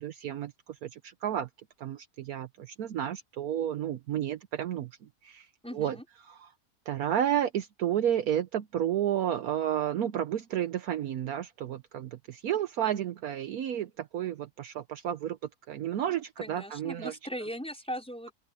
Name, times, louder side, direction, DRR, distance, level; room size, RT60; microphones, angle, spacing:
voice 1, 0.0-1.5 1.8-4.9 5.2-5.5 5.7-6.0 6.3-6.5 6.9-15.4 15.7-17.2, right 10 dB, 70° right, 1.2 m, -31 dB
voice 2, 5.6-6.0 16.4-18.3, equal, 5° left, 5.0 m, -38 dB
open air
omnidirectional pair, 1.7 m